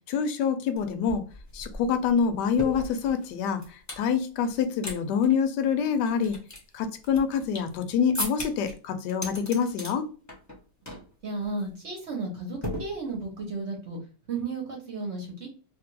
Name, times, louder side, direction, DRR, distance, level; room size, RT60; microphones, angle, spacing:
voice 1, 0.1-1.2 1.5-3.6 4.0-6.4 6.7-10.1, left 7 dB, 75° left, 1.2 m, -26 dB
sound 1, 0.8-0.9 1.1-4.1 4.5-5.0 5.2-5.3 5.8-7.8 8.1-8.7 9.1-9.9 10.3-10.6 10.9-11.1 11.4-11.7 12.6-13.4, left 1 dB, 15° left, 0.8 m, -37 dB
voice 2, 11.2-14.0 14.3-15.5, right 3 dB, 50° right, 0.9 m, -33 dB
2.8 x 2.4 x 2.9 m
omnidirectional pair, 1.9 m